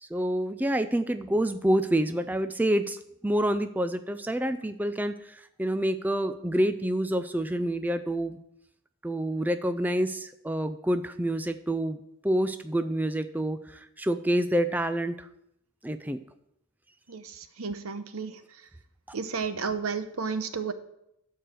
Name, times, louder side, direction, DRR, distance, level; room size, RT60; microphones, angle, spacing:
voice 1, 0.0-3.0 3.2-5.1 5.6-8.4 9.0-12.0 12.2-13.6 14.0-15.1 15.8-16.2, right 1 dB, 10° right, 9 dB, 0.4 m, -27 dB
voice 2, 17.1-18.3 19.1-20.7, right 5 dB, 85° right, 10 dB, 0.9 m, -32 dB
13.0 x 4.7 x 7.6 m, 0.78 s
head